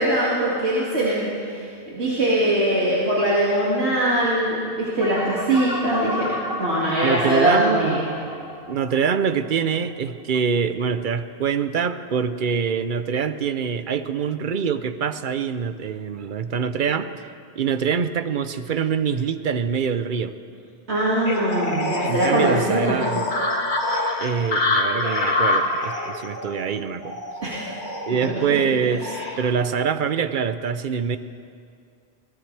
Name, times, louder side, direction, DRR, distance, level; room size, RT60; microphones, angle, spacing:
voice 1, 0.0-6.3 6.5-8.1 20.9-23.0 27.4-27.7 28.1-28.6 29.1-29.3, right 1 dB, 90° right, -8 dB, 2.7 m, -22 dB
sound 1, 5.0-9.8, left 1 dB, 5° right, 1.8 m, -31 dB
voice 2, 7.0-8.0 8.7-20.3 22.0-23.3 24.2-27.2 28.1-31.2, right 6 dB, 55° right, 11 dB, 0.8 m, -25 dB
sound 2, 21.3-29.5, left 2 dB, 50° left, 1.6 m, -26 dB
22.5 x 19.0 x 3.4 m, 2.3 s
omnidirectional pair, 1.1 m